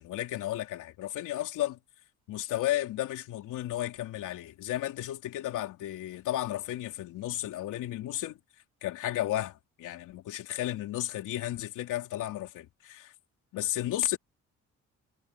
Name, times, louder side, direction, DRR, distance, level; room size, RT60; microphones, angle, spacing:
voice 1, 0.0-1.8 2.3-8.4 8.8-13.1 13.5-14.2, left 13 dB, 85° left, 3.2 m, -33 dB
cardioid pair, 90°, 30 cm